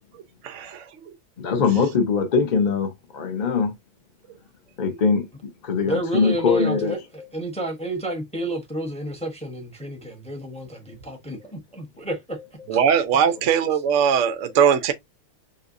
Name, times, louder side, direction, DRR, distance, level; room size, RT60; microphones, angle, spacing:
voice 1, 0.4-0.8 12.7-14.9, right 7 dB, 85° right, 0.6 m, -20 dB
voice 2, 1.4-3.7 4.8-7.0, left 5 dB, 75° left, 0.4 m, -22 dB
voice 3, 5.9-7.0 7.3-12.4, right 1 dB, 10° left, 0.4 m, -30 dB
5.5 x 3.0 x 2.6 m
omnidirectional pair, 2.4 m